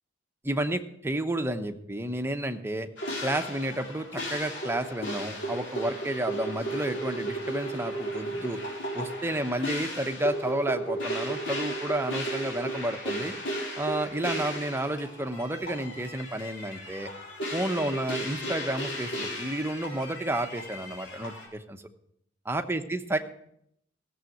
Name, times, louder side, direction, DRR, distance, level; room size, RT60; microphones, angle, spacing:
voice 1, 0.4-2.9 3.2-8.6 8.9-13.3 13.8-17.1 17.5-21.8 22.5-23.2, right 1 dB, 10° right, 6 dB, 0.9 m, -31 dB
sound 1, 3.0-21.5, right 1 dB, 65° left, 4.2 m, -35 dB
16.0 x 7.1 x 7.8 m, 0.73 s
head